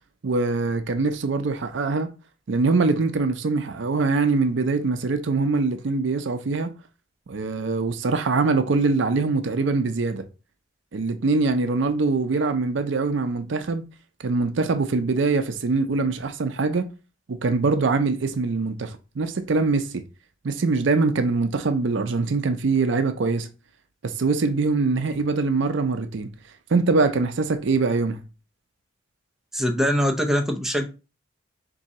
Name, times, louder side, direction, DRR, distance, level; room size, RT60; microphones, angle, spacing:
voice 1, 0.2-2.1 2.5-6.7 7.3-10.2 10.9-13.8 14.2-16.9 17.3-20.0 20.4-23.5 24.0-26.3 26.7-28.2, right 3 dB, 65° right, 0.5 m, -23 dB
voice 2, 29.5-30.9, equal, ahead, 0.5 m, -22 dB
3.7 x 2.7 x 4.1 m
head